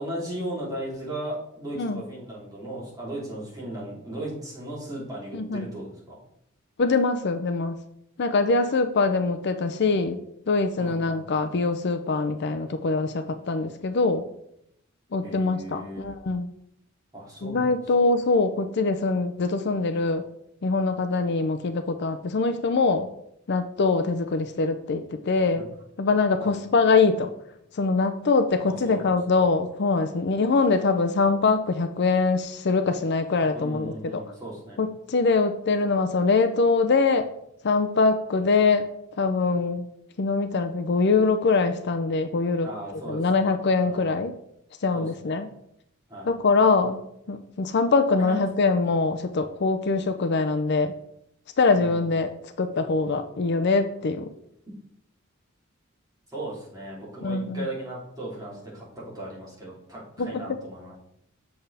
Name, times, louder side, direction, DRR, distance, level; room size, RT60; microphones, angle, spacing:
voice 1, 0.0-6.2 10.8-11.4 15.2-16.1 17.1-17.7 25.5-25.6 26.4-26.5 28.6-29.2 33.5-34.8 42.6-44.0 44.9-45.4 46.1-46.3 48.2-48.4 51.7-52.1 56.3-61.0, right 1 dB, 20° right, -7 dB, 3.2 m, -37 dB
voice 2, 5.3-5.7 6.8-7.8 8.2-10.2 10.5-14.2 15.1-16.5 17.4-20.2 20.6-23.1 23.5-25.6 26.0-27.3 27.7-34.2 34.8-37.3 37.6-38.9 39.2-39.9 40.2-42.7 43.1-44.4 44.8-45.5 46.3-50.9 51.6-52.3 52.6-54.3 57.2-57.7 60.2-60.4, left 4 dB, 55° left, 8 dB, 0.5 m, -23 dB
7.8 x 6.8 x 3.4 m, 0.75 s
head